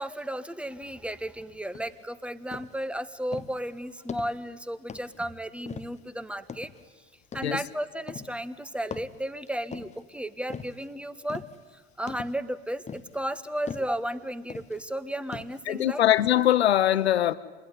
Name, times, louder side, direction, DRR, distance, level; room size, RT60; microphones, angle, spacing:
voice 1, 0.0-6.7 7.3-11.4 11.7-16.0, right 1 dB, 5° right, 1.5 m, -34 dB
sound 1, 1.7-2.0 2.5-2.8 3.3-3.6 4.1-4.5 4.9-5.2 5.7-6.1 6.5-6.8 7.3-7.7 8.1-8.5 8.9-10.1 10.5-10.9 11.3-11.6 12.1-12.5 12.9-13.2 13.7-14.0 14.5-14.8 15.3-15.7 16.2-16.3, left 6 dB, 20° left, 1.2 m, -41 dB
voice 2, 15.7-17.3, left 12 dB, 85° left, 0.9 m, -22 dB
26.5 x 21.0 x 10.0 m
hypercardioid pair, 80°, 31 cm